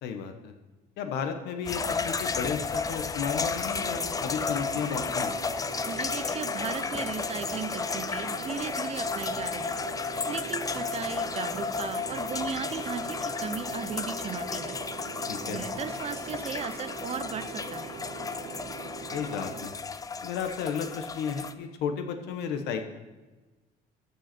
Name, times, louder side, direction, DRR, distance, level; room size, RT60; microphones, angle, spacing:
voice 1, 0.0-0.5 1.0-5.3 15.3-15.6 19.1-19.7 20.2-22.9, left 7 dB, 85° left, 6 dB, 1.0 m, -33 dB
sound 1, 1.7-21.5, left 5 dB, 20° left, 0.4 m, -33 dB
sound 2, 3.6-19.6, right 4 dB, 80° right, 1.8 m, -42 dB
voice 2, 5.9-14.8 15.4-18.0, right 7 dB, 40° right, 12 dB, 0.6 m, -36 dB
14.0 x 5.5 x 4.3 m, 1.2 s
cardioid pair, 110°, 17 cm